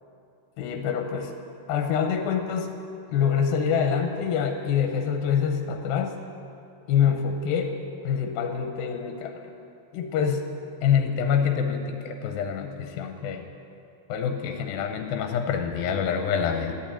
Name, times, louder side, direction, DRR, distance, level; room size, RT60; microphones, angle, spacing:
voice 1, 0.6-1.4 1.7-2.7 3.1-6.2 6.9-7.8 8.0-9.5 9.9-10.5 10.8-13.4 14.1-16.8, left 7 dB, 90° left, 5 dB, 2.5 m, -26 dB
11.5 x 8.5 x 8.7 m, 2.6 s
omnidirectional pair, 4.2 m